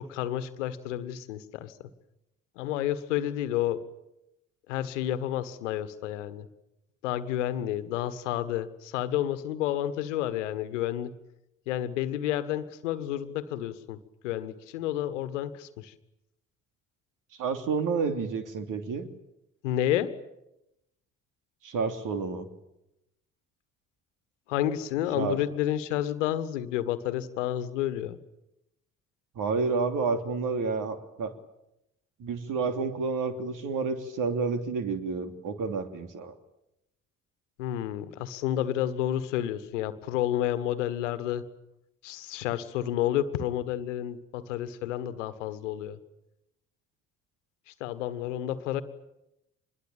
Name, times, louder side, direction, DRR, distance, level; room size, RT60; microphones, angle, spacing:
voice 1, 0.0-1.9 2.6-3.8 4.7-6.5 7.0-11.1 11.7-14.0 14.2-15.9 19.6-20.1 24.5-28.2 37.6-41.4 42.0-46.0 47.7-48.8, left 12 dB, 70° left, 14 dB, 1.6 m, -30 dB
voice 2, 17.4-19.1 21.6-22.5 25.1-25.4 29.3-31.3 32.2-36.3, right 4 dB, 55° right, 8 dB, 3.1 m, -30 dB
26.0 x 21.5 x 9.0 m, 0.88 s
figure-of-eight pair, 45°, 38 cm